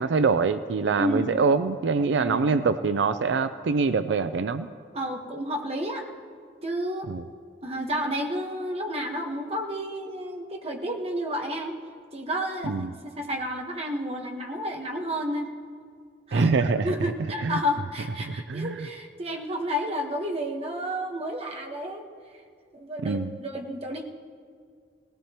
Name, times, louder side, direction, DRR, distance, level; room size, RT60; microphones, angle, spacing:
voice 1, 0.0-4.7 7.1-7.2 12.6-12.9 16.3-17.0 17.4-17.6 18.2-18.9 23.0-23.3, right 4 dB, 90° right, 11 dB, 0.4 m, -24 dB
voice 2, 1.0-1.4 2.2-2.5 4.9-6.0 6.6-7.1 7.6-11.8 12.1-15.5 16.3-22.1 22.7-24.1, equal, 35° right, 2 dB, 1.3 m, -31 dB
19.0 x 16.0 x 3.0 m, 2.2 s
head